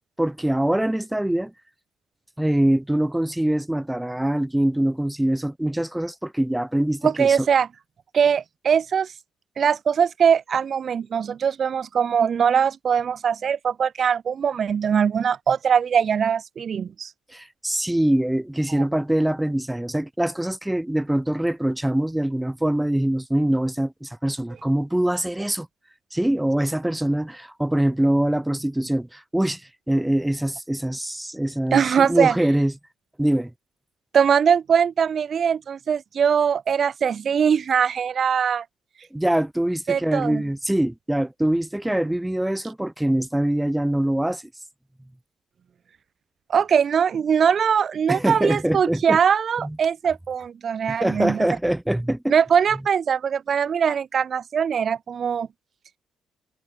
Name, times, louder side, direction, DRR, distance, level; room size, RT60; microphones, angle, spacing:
voice 1, 0.2-1.5 2.4-7.5 17.3-25.7 26.1-29.6 29.9-32.7 33.2-33.5 39.1-44.4 48.1-49.2 49.6-49.8 50.9-52.4, right 1 dB, 5° right, 1.9 m, -23 dB
voice 2, 7.0-7.7 8.1-9.1 9.6-17.1 18.7-18.8 31.7-32.4 34.1-38.6 39.9-40.4 46.5-51.5 52.3-55.5, right 7 dB, 50° right, 1.0 m, -21 dB
cardioid pair, 90°, 0 cm